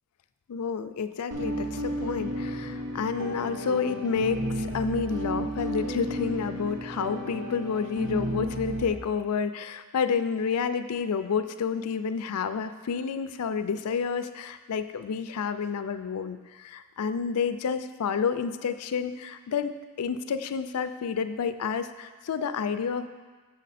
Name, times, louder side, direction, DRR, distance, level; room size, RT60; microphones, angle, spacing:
voice 1, 0.5-23.1, left 6 dB, 90° left, 10 dB, 0.4 m, -30 dB
sound 1, 1.3-8.9, equal, 85° right, 1.0 m, -33 dB
6.7 x 6.5 x 4.1 m, 1.4 s
head